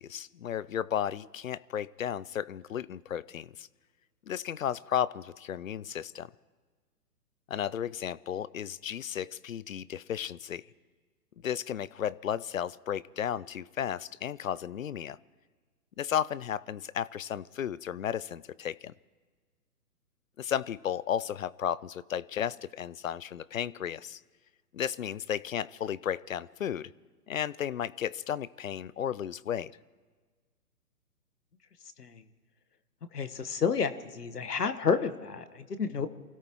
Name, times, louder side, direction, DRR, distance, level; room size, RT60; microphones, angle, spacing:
voice 1, 0.0-3.7 4.3-6.3 7.5-10.6 11.4-15.2 16.0-18.9 20.4-24.2 24.7-26.9 27.3-29.7, left 9 dB, 55° left, 20 dB, 0.6 m, -34 dB
voice 2, 33.1-36.1, left 6 dB, 75° left, 11 dB, 1.4 m, -30 dB
28.5 x 16.5 x 3.0 m, 1.4 s
figure-of-eight pair, 135°, 47 cm